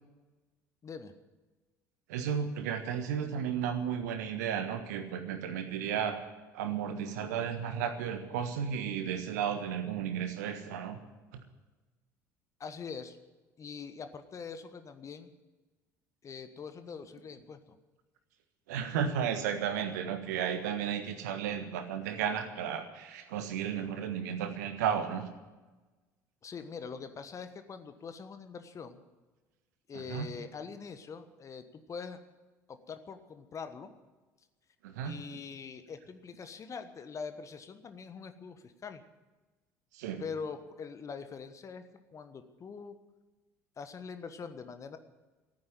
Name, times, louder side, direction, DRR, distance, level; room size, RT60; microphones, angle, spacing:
voice 1, 0.8-1.1 12.6-13.2 13.6-15.3 16.2-17.8 26.4-29.0 29.9-32.2 32.7-33.9 35.0-39.0 40.2-41.8 42.1-43.0 43.8-45.0, left 5 dB, 30° left, 9 dB, 1.3 m, -43 dB
voice 2, 2.1-6.2 6.5-11.0 18.7-25.3 29.9-30.3 34.8-35.1 39.9-40.2, right 8 dB, 65° right, 8 dB, 1.5 m, -33 dB
15.0 x 9.5 x 9.8 m, 1.2 s
figure-of-eight pair, 60°, 10 cm